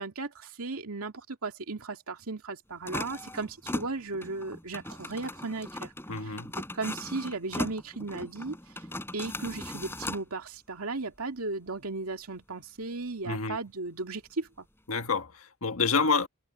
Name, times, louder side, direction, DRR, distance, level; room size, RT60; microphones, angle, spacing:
voice 1, 0.0-5.9 6.2-8.8 9.1-14.7, right 3 dB, 90° right, 2.3 m, -36 dB
sound 1, 2.9-10.2, left 1 dB, 10° left, 6.6 m, -38 dB
voice 2, 6.1-6.5 13.2-13.6 14.9-16.3, left 4 dB, 80° left, 1.5 m, -28 dB
head